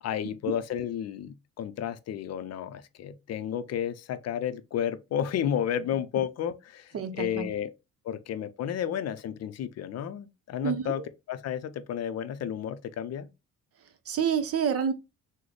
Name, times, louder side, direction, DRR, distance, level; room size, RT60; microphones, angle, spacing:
voice 1, 0.0-7.7 8.0-11.0 11.3-13.3, left 9 dB, 55° left, 0.5 m, -32 dB
voice 2, 6.9-7.5 10.6-11.0 14.1-14.9, right 7 dB, 50° right, 0.6 m, -28 dB
3.8 x 2.1 x 3.2 m
cardioid pair, 90°, 30 cm